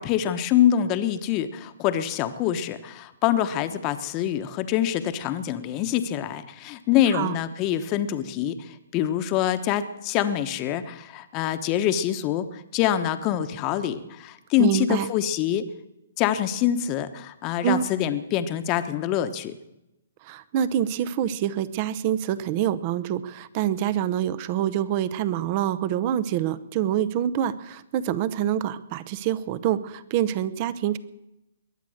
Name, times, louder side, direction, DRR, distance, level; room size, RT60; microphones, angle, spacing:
voice 1, 0.0-15.7 16.2-19.5, left 11 dB, 30° left, 10 dB, 1.0 m, -25 dB
voice 2, 14.6-15.1 17.6-17.9 20.2-31.0, right 10 dB, 40° right, 16 dB, 0.8 m, -26 dB
22.0 x 8.4 x 6.4 m, 0.91 s
hypercardioid pair, 135°, 0 cm